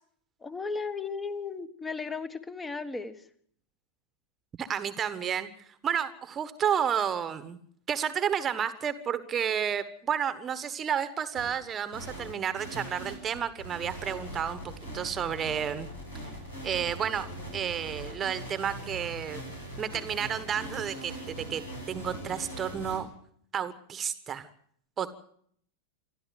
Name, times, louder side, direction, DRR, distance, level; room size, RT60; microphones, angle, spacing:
voice 1, 0.4-3.3, left 4 dB, 10° left, 14 dB, 1.6 m, -35 dB
voice 2, 4.6-5.5 5.8-7.6 7.9-15.9 16.6-17.3 17.5-19.4 19.8-23.1 23.5-24.5 25.0-25.2, right 8 dB, 25° right, 13 dB, 1.4 m, -31 dB
sound 1, 11.3-11.5 11.9-23.0, right 1 dB, 80° left, 7.9 m, -41 dB
27.5 x 12.5 x 7.8 m, 0.64 s
figure-of-eight pair, 90°, 0 cm